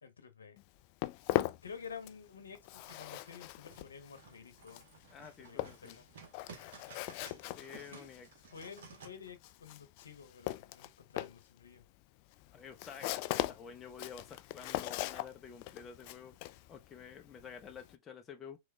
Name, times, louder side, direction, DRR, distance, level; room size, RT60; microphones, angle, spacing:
voice 1, 0.0-0.6 1.6-4.9 5.4-6.1 7.9-8.1 8.5-11.8, left 6 dB, 85° left, 1.0 m, -50 dB
Walk footsteps, 0.6-2.3 2.5-17.9, left 17 dB, 50° left, 0.4 m, -40 dB
sound 1, 2.8-9.1, right 5 dB, 65° right, 1.7 m, -55 dB
voice 2, 5.1-6.0 7.6-8.3 12.5-16.4 16.7-18.6, left 6 dB, 25° left, 0.9 m, -50 dB
3.8 x 3.4 x 3.4 m
hypercardioid pair, 105°, 0 cm